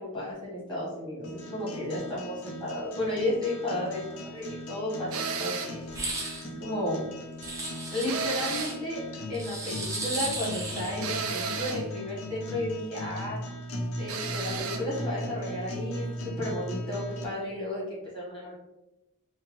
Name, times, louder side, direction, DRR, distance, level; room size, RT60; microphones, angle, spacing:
voice 1, 0.0-5.8 6.6-7.0 7.9-9.0 9.3-13.4 14.0-18.5, left 1 dB, 25° left, -8 dB, 1.4 m, -33 dB
sound 1, 1.2-17.2, left 1 dB, 85° left, 0.5 m, -38 dB
sound 2, 5.1-5.8 8.1-8.8 11.0-11.9 14.1-14.9, right 5 dB, 80° right, 0.4 m, -33 dB
sound 3, 5.9-6.4 7.4-8.7 9.3-11.1, right 2 dB, 15° right, 0.4 m, -35 dB
2.9 x 2.3 x 3.0 m, 0.96 s
head